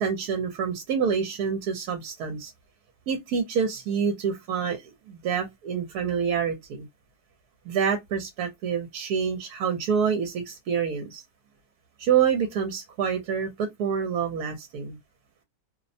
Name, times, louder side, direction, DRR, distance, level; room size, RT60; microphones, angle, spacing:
voice 1, 0.0-2.5 3.1-6.9 7.7-11.2 12.0-15.0, right 7 dB, 75° right, 1.1 m, -27 dB
2.8 x 2.0 x 2.5 m
omnidirectional pair, 1.7 m